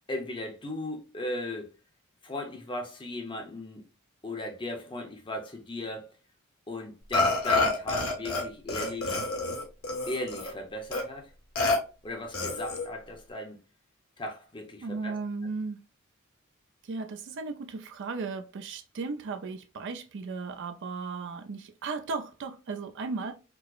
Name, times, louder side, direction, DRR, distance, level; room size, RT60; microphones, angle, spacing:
voice 1, 0.1-1.7 2.2-3.8 4.2-6.1 6.7-9.2 10.1-11.3 12.0-13.6 14.2-15.2, left 1 dB, 25° left, 0.7 m, -37 dB
Burping eructation, 7.1-8.4 8.7-10.5 10.9-11.0 11.6-11.8 12.3-12.9, left 2 dB, 75° left, 1.2 m, -28 dB
voice 2, 14.8-15.8 16.8-23.3, right 4 dB, 60° right, 0.4 m, -36 dB
4.6 x 2.0 x 2.4 m
head